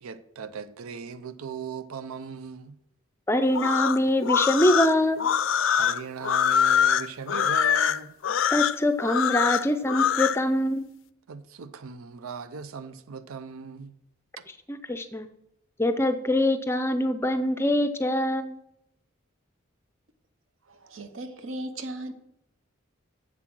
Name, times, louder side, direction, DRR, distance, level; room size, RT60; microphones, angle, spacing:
voice 1, 0.0-2.7 5.8-8.1 11.3-13.9 14.4-14.5, right 6 dB, 90° right, 0.5 m, -38 dB
voice 2, 3.3-5.2 8.5-10.9 14.7-15.3 15.8-18.6, left 1 dB, 10° left, 0.5 m, -24 dB
sound 1, 3.5-10.4, left 8 dB, 70° left, 0.4 m, -24 dB
voice 3, 20.7-22.1, right 1 dB, 70° right, 1.0 m, -37 dB
7.5 x 7.4 x 6.1 m
head